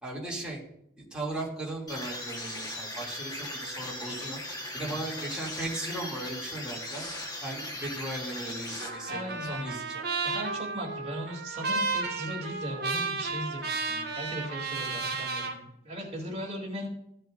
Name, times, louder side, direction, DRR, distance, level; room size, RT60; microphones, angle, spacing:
voice 1, 0.0-0.6 1.0-4.4 4.7-7.0 7.4-10.0, right 2 dB, 5° right, -5 dB, 2.5 m, -37 dB
sound 1, 1.9-9.4, left 1 dB, 20° left, 1.2 m, -38 dB
Trumpet, 8.8-15.6, right 4 dB, 50° right, 1.6 m, -33 dB
voice 2, 9.1-9.8 10.2-16.9, equal, 30° right, -2 dB, 2.7 m, -38 dB
15.0 x 7.7 x 2.5 m, 0.78 s
head